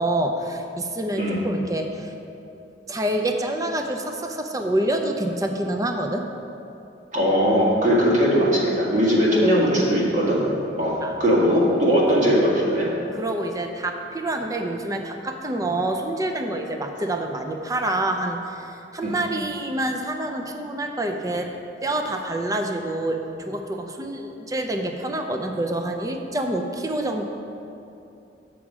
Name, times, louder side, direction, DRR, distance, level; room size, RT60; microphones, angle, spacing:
voice 1, 0.0-2.1 2.9-6.3 11.0-11.1 13.1-21.5 21.8-27.2, right 1 dB, 20° right, 4 dB, 0.6 m, -27 dB
voice 2, 7.1-10.4 10.8-12.9 19.0-19.1, equal, 40° right, -5 dB, 1.8 m, -19 dB
9.0 x 6.1 x 4.8 m, 2.8 s
head